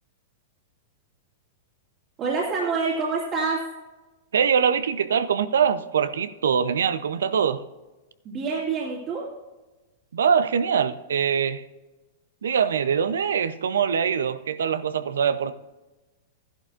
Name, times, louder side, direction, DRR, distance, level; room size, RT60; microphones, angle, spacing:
voice 1, 2.2-3.6 8.2-9.2, right 4 dB, 35° right, -5 dB, 2.4 m, -26 dB
voice 2, 4.3-7.6 10.1-11.6 12.4-15.5, right 7 dB, 80° right, 13 dB, 0.6 m, -23 dB
13.5 x 11.5 x 2.5 m, 1.1 s
hypercardioid pair, 115°, 0 cm